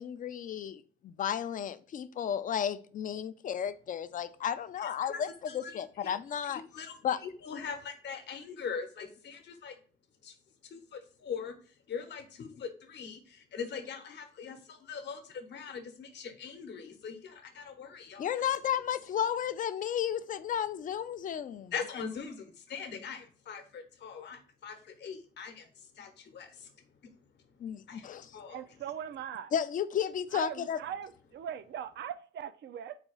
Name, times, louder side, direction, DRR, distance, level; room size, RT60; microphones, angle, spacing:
voice 1, 0.0-5.3 5.5-6.6 7.0-7.2 18.2-21.7 27.6-28.4 29.5-30.8, left 9 dB, 40° left, 0.4 m, -33 dB
voice 2, 4.8-5.2 5.5-6.1 6.5-6.9 7.2-9.7 10.2-10.3 10.6-18.4 21.7-26.7 27.0-27.1 27.9-28.6, left 6 dB, 60° left, 0.9 m, -42 dB
voice 3, 28.5-29.5 30.3-33.0, right 9 dB, 65° right, 0.4 m, -40 dB
4.1 x 2.3 x 4.5 m
cardioid pair, 90°, 20 cm